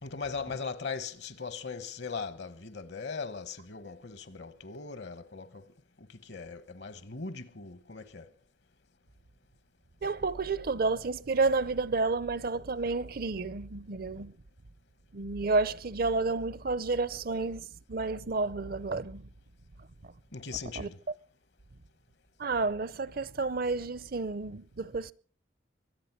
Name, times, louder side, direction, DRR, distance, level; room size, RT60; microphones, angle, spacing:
voice 1, 0.0-5.6 6.0-8.3 20.3-21.0, left 5 dB, 65° left, 1.1 m, -39 dB
voice 2, 10.0-14.3 15.1-19.3 20.0-20.1 20.8-20.9 22.4-25.1, right 3 dB, 55° right, 0.6 m, -30 dB
23.5 x 8.5 x 5.9 m
head